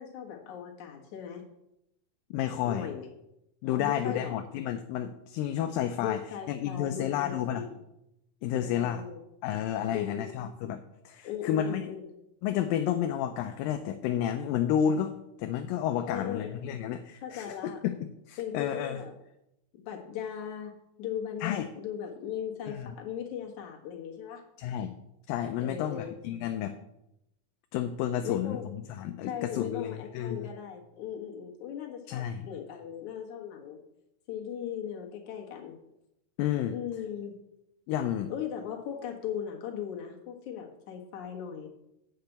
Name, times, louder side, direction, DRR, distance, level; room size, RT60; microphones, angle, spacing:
voice 1, 0.0-1.4 2.6-3.1 3.7-4.4 6.0-7.8 8.5-9.2 9.9-10.4 11.2-12.0 16.1-16.6 17.2-17.8 18.4-19.1 19.7-20.7 21.0-24.4 25.6-26.1 28.2-28.7 29.2-33.8 34.3-35.8 36.7-37.3 38.3-41.7, left 9 dB, 60° left, 0 dB, 2.7 m, -38 dB
voice 2, 2.3-2.9 3.6-6.2 6.5-7.7 8.4-9.0 9.4-11.8 12.4-17.9 18.3-19.0 21.4-21.7 22.7-22.9 24.6-24.9 25.3-26.8 27.7-30.5 32.1-32.4 36.4-36.8 37.9-38.3, left 10 dB, 80° left, 7 dB, 2.3 m, -31 dB
8.6 x 5.8 x 7.9 m, 0.84 s
omnidirectional pair, 4.2 m